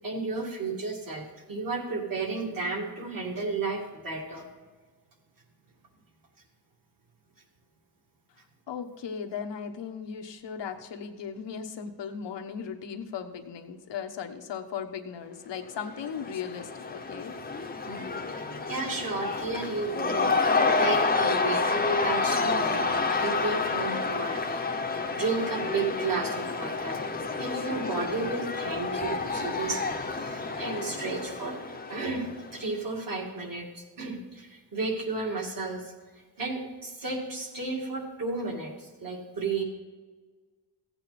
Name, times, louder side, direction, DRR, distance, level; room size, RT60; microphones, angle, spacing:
voice 1, 0.0-4.5 17.9-18.1 18.4-27.0 27.4-31.6 31.9-39.6, right 3 dB, 50° right, 0 dB, 2.3 m, -33 dB
voice 2, 8.7-17.3, left 7 dB, 85° left, 5 dB, 1.1 m, -37 dB
Cheering / Crowd, 15.7-32.6, left 3 dB, 20° left, 0.8 m, -29 dB
15.0 x 8.7 x 4.2 m, 1.4 s
wide cardioid pair, 155°, 42 cm